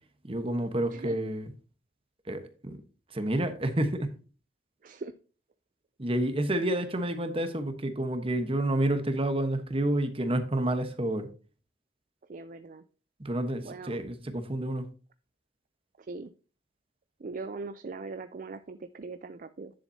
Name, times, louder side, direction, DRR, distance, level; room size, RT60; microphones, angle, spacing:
voice 1, 0.2-1.4 2.3-2.8 3.1-4.1 6.0-11.3 13.2-14.8, right 1 dB, 30° right, 1.1 m, -29 dB
voice 2, 4.8-5.1 12.3-12.8 13.6-14.0 16.0-16.3 17.2-19.7, right 3 dB, 45° right, 0.4 m, -40 dB
10.5 x 7.3 x 2.8 m
head